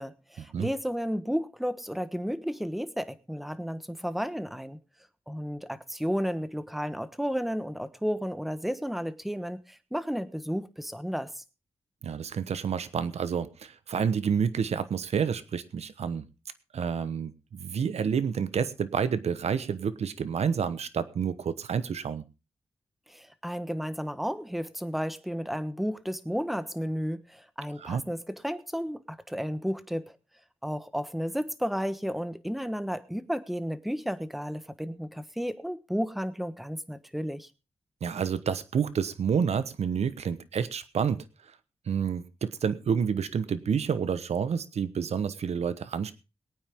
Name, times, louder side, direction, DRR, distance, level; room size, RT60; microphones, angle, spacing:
voice 1, 0.0-4.8 5.3-11.4 23.1-30.0 30.6-37.5, equal, ahead, 13 dB, 1.2 m, -32 dB
voice 2, 12.0-16.2 16.7-22.2 27.8-28.0 38.0-41.2 41.9-46.1, right 7 dB, 85° right, 13 dB, 1.1 m, -29 dB
22.0 x 9.2 x 3.6 m, 0.30 s
wide cardioid pair, 95°, 11 cm